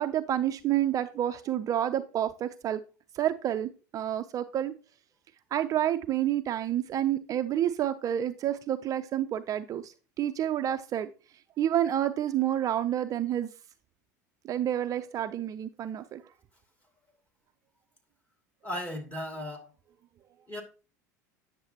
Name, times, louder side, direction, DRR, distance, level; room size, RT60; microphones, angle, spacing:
voice 1, 0.0-2.8 3.1-4.7 5.5-11.1 11.6-13.5 14.4-16.2, right 11 dB, 35° right, 0.5 m, -29 dB
voice 2, 18.6-19.7 20.5-20.6, left 1 dB, 15° left, 2.5 m, -36 dB
9.4 x 6.6 x 2.8 m
hypercardioid pair, 80°, 10 cm